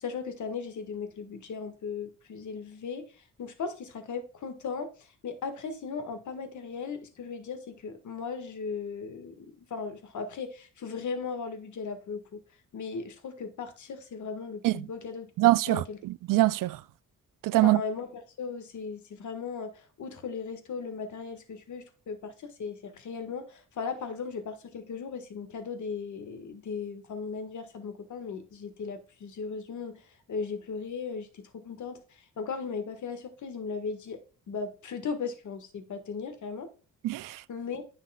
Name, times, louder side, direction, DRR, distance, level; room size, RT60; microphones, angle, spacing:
voice 1, 0.0-12.4 12.7-15.3 15.7-16.0 17.6-34.2 34.5-36.7 37.5-37.8, left 5 dB, 65° left, 1.7 m, -37 dB
voice 2, 15.4-16.8 17.4-17.8 37.0-37.4, right 18 dB, 80° right, 0.5 m, -24 dB
9.9 x 5.7 x 2.3 m
cardioid pair, 95°, 32 cm